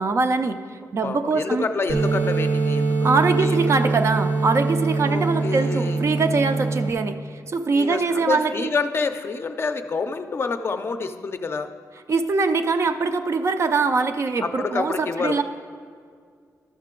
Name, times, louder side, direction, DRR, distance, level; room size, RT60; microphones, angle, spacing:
voice 1, 0.0-1.7 3.0-8.7 12.1-15.4, right 4 dB, 45° right, 8 dB, 0.4 m, -23 dB
voice 2, 1.0-2.9 3.4-3.9 5.0-6.0 7.7-11.7 14.4-15.4, left 4 dB, 40° left, 8 dB, 0.4 m, -28 dB
sound 1, 1.9-6.9, right 3 dB, 80° right, 0.9 m, -23 dB
12.0 x 6.6 x 3.7 m, 2.1 s
wide cardioid pair, 135°, 6 cm